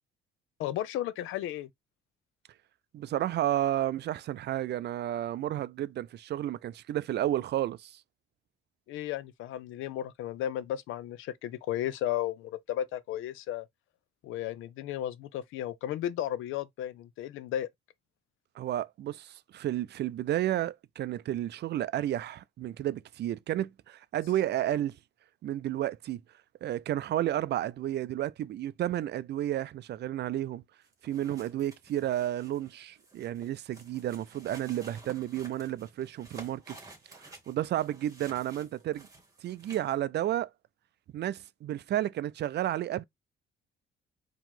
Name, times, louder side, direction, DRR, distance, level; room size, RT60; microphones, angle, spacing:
voice 1, 0.6-1.7 8.9-13.6 14.2-17.7, left 12 dB, 90° left, 0.5 m, -34 dB
voice 2, 2.9-8.0 18.6-25.0 25.4-26.2 26.6-30.6 31.0-36.8 37.2-39.1 39.4-40.5 41.1-43.0, right 12 dB, 60° right, 0.4 m, -32 dB
sound 1, 30.9-39.9, right 2 dB, 15° right, 1.8 m, -52 dB
4.6 x 2.9 x 3.7 m
cardioid pair, 90°, 20 cm